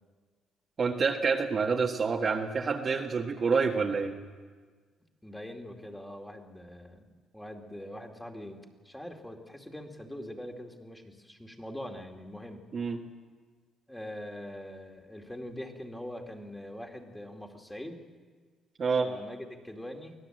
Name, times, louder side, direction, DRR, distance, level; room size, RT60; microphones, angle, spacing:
voice 1, 0.8-4.1 12.7-13.0 18.8-19.1, right 5 dB, 45° right, 0 dB, 1.6 m, -27 dB
voice 2, 5.2-7.1 7.3-12.6 13.9-18.0 19.0-20.1, left 1 dB, 5° left, 3 dB, 2.5 m, -43 dB
24.0 x 16.5 x 7.8 m, 1.5 s
cardioid pair, 90°, 0 cm